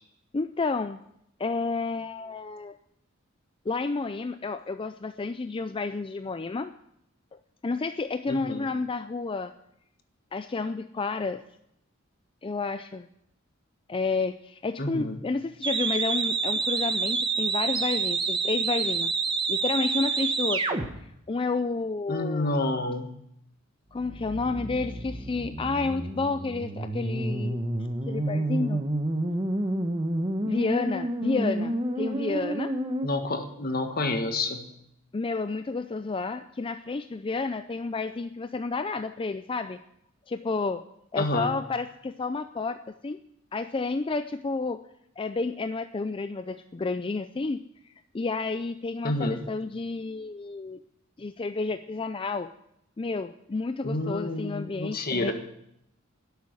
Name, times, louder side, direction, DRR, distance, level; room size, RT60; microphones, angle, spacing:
voice 1, 0.3-1.0 1.4-2.8 3.7-6.7 7.6-9.5 10.3-11.4 12.4-13.1 13.9-19.1 19.5-22.6 23.9-27.6 28.1-28.8 30.4-32.7 35.1-39.8 40.3-40.8 41.1-43.2 43.5-44.8 45.2-47.6 48.1-50.8 51.2-52.5 53.0-55.3, left 3 dB, 25° left, 10 dB, 0.4 m, -30 dB
voice 2, 8.3-8.7 14.8-15.2 22.1-23.1 33.0-34.6 41.2-41.5 49.0-49.4 53.8-55.3, left 2 dB, 45° left, 6 dB, 1.5 m, -29 dB
sound 1, 15.6-20.9 24.0-33.1, right 3 dB, 25° right, 1.1 m, -29 dB
11.0 x 8.3 x 9.6 m, 0.77 s
head